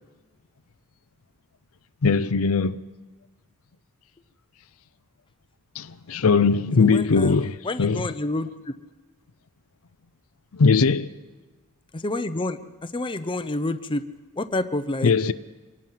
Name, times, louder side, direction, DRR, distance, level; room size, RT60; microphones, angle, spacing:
voice 1, 2.0-2.8 5.8-8.0 10.5-11.1 15.0-15.3, left 4 dB, 70° left, 0.6 m, -20 dB
voice 2, 6.8-7.4 7.6-8.7 11.9-14.0 14.4-15.1, left 2 dB, 20° left, 0.7 m, -28 dB
25.0 x 18.5 x 5.8 m
head